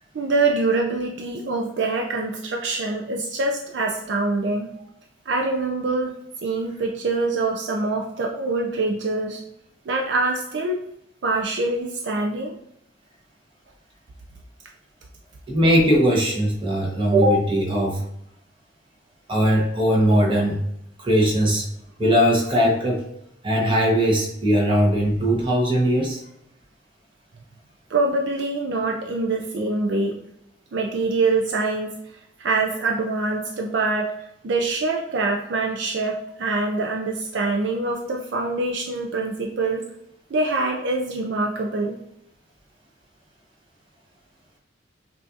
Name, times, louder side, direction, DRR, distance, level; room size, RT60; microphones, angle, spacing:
voice 1, 0.1-4.7 5.3-9.4 9.9-10.8 11.2-12.6 27.9-30.2 30.7-32.0 32.4-34.1 34.4-39.9 40.3-42.0, right 3 dB, 60° right, 2 dB, 0.4 m, -24 dB
voice 2, 15.5-18.0 19.3-20.6 21.0-21.6 22.0-23.0 23.4-26.2, equal, 25° right, -2 dB, 1.0 m, -19 dB
5.5 x 2.6 x 2.5 m, 0.77 s
head